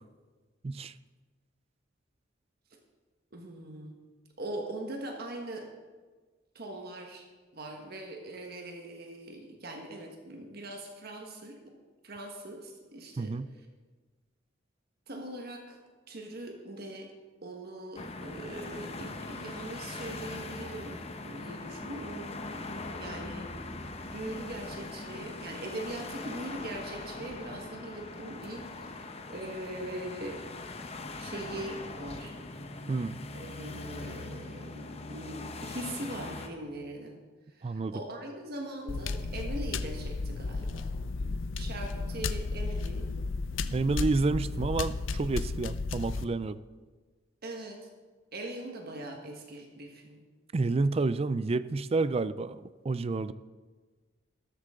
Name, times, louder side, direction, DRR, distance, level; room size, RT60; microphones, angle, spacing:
voice 1, 3.3-4.0 4.4-5.7 6.5-7.2 7.5-11.6 12.0-13.3 15.1-15.8 16.1-17.1 17.4-21.0 21.2-22.6 22.9-23.5 24.1-29.0 29.3-30.4 31.2-32.4 33.3-37.2 37.6-40.9 41.6-43.0 47.4-47.8 48.3-50.2, right 1 dB, 55° right, 2 dB, 1.4 m, -41 dB
voice 2, 13.2-13.5 32.9-33.2 37.6-38.0 43.7-46.6 50.5-53.3, right 3 dB, 30° right, 15 dB, 0.4 m, -29 dB
sound 1, 18.0-36.5, left 2 dB, 35° left, 0.9 m, -41 dB
sound 2, 38.9-46.3, left 3 dB, 80° left, 0.6 m, -33 dB
13.0 x 13.0 x 3.7 m, 1.4 s
head